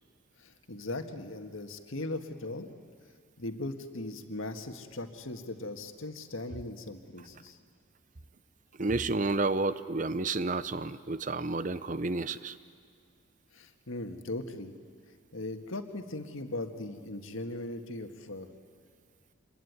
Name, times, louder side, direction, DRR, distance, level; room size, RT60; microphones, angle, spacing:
voice 1, 0.4-2.7 3.4-7.6 13.5-14.7 15.3-18.5, left 2 dB, 70° left, 7 dB, 1.8 m, -39 dB
voice 2, 8.8-12.6, right 3 dB, 35° right, 14 dB, 0.7 m, -30 dB
27.0 x 21.5 x 9.5 m, 2.2 s
head